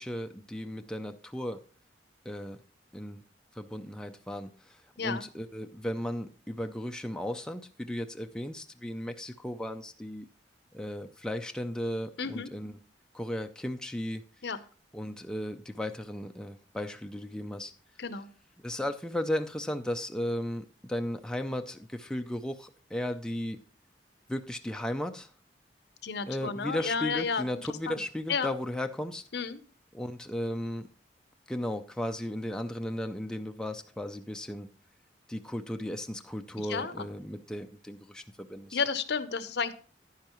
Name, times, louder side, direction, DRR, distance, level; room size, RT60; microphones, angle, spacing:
voice 1, 0.0-1.6 2.2-2.6 2.9-3.2 3.5-10.3 10.7-12.8 13.1-14.2 14.9-17.7 18.6-23.6 24.3-25.3 26.3-29.2 29.9-30.9 31.5-34.7 35.3-38.8, left 1 dB, 5° left, 5 dB, 0.4 m, -35 dB
voice 2, 12.2-12.5 14.4-14.6 18.0-18.3 26.0-27.4 27.9-28.0 28.3-28.5 29.3-29.6 36.6-37.1 38.7-39.7, left 5 dB, 60° left, 12 dB, 0.7 m, -32 dB
10.5 x 10.0 x 3.0 m, 0.42 s
head